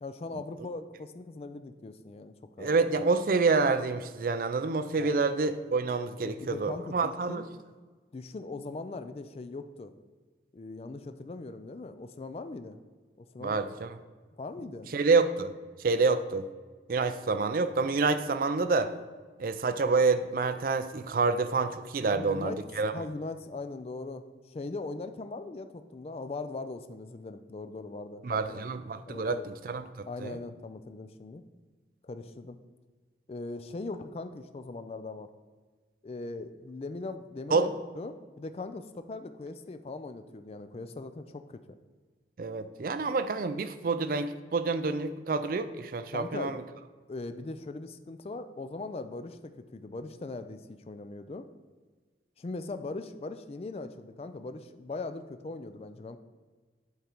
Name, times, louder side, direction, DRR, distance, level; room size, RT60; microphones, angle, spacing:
voice 1, 0.0-2.7 5.0-5.2 6.2-7.5 8.1-9.9 10.5-12.8 13.2-13.6 14.4-14.9 22.0-22.6 22.9-28.6 29.1-29.4 30.0-31.4 32.0-32.6 33.3-35.3 36.0-37.7 38.0-41.6 46.1-46.6 47.1-51.5 52.4-56.2, left 3 dB, 35° left, 9 dB, 0.3 m, -40 dB
voice 2, 2.6-7.4 13.4-14.0 14.9-15.5 15.8-16.5 16.9-18.9 19.4-22.9 28.2-30.4 37.5-37.7 42.4-46.6, right 4 dB, 50° right, 11 dB, 0.4 m, -28 dB
8.2 x 3.7 x 4.5 m, 1.4 s
head